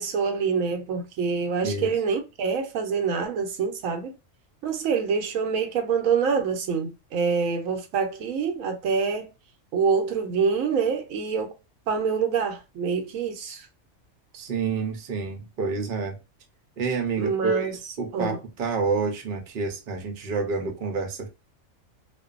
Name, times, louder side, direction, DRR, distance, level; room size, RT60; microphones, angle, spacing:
voice 1, 0.0-4.2 4.6-9.3 9.7-11.5 11.9-13.7 17.2-17.8 18.1-18.4, right 5 dB, 80° right, 1.0 m, -26 dB
voice 2, 14.3-16.2 16.8-17.7 18.0-21.3, right 4 dB, 50° right, 0.7 m, -28 dB
2.5 x 2.2 x 2.4 m
omnidirectional pair, 1.4 m